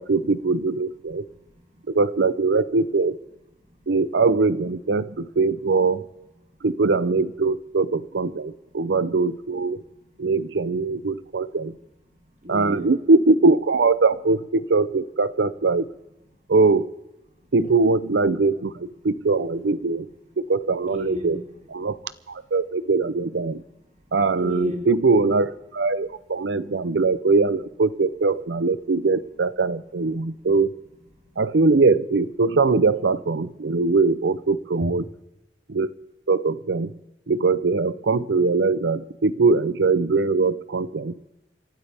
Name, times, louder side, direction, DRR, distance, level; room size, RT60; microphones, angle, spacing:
voice 1, 0.0-1.3 1.9-3.2 3.9-6.0 6.6-9.8 10.2-11.7 12.5-15.9 16.5-16.9 17.5-20.1 20.4-21.4 21.7-22.0 22.3-23.6 24.1-30.7 31.4-35.0 35.7-35.9 36.3-36.9 37.3-41.1, right 3 dB, 75° right, 16 dB, 0.6 m, -21 dB
voice 2, 1.2-2.0 3.6-3.9 9.8-10.3 12.1-12.9 17.4-17.5 19.9-20.0 20.9-21.5 22.0-22.1 22.4-22.6 23.5-23.6 23.9-24.9 26.5-26.8 30.2-30.5 31.2-31.4, left 1 dB, 45° right, 1 dB, 3.1 m, -38 dB
27.5 x 12.5 x 3.5 m, 0.99 s
head